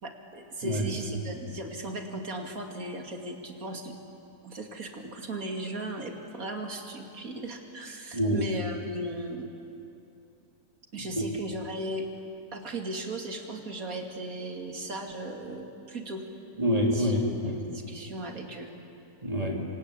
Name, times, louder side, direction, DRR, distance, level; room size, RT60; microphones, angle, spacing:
voice 1, 0.0-3.9 4.4-9.5 10.9-12.0 12.5-16.2 16.9-17.1 17.4-18.7, right 1 dB, 65° right, 3 dB, 2.9 m, -37 dB
voice 2, 8.1-8.5 11.2-11.3 16.6-17.5 19.2-19.6, equal, 25° right, -1 dB, 3.7 m, -26 dB
28.0 x 25.0 x 8.4 m, 2.8 s
omnidirectional pair, 1.6 m